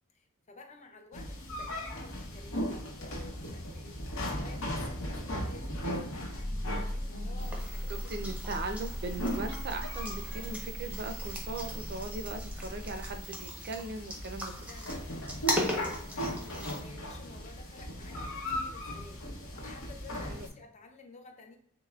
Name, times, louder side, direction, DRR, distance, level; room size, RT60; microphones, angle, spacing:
voice 1, 0.1-5.7 6.7-8.3 14.4-15.1 15.5-21.6, left 3 dB, 35° left, 4 dB, 0.5 m, -53 dB
sound 1, 1.1-20.5, equal, 85° left, 0.8 m, -38 dB
sound 2, 6.4-13.2, equal, 50° left, 1.3 m, -39 dB
sound 3, 7.4-16.8, equal, 5° right, 0.6 m, -39 dB
voice 2, 7.9-14.5 20.3-20.5, right 2 dB, 50° right, 7 dB, 0.4 m, -39 dB
5.6 x 2.1 x 2.3 m, 0.67 s
head